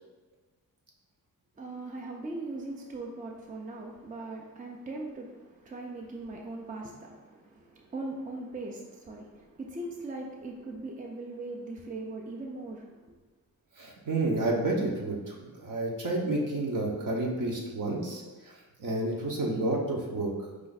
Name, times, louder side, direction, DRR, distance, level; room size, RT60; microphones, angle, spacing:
voice 1, 1.6-13.2, right 2 dB, 25° right, 0 dB, 0.5 m, -40 dB
voice 2, 13.8-18.5 18.8-20.3, right 2 dB, 60° right, -2 dB, 1.0 m, -30 dB
4.9 x 2.5 x 4.0 m, 1.3 s
cardioid pair, 105°, 35 cm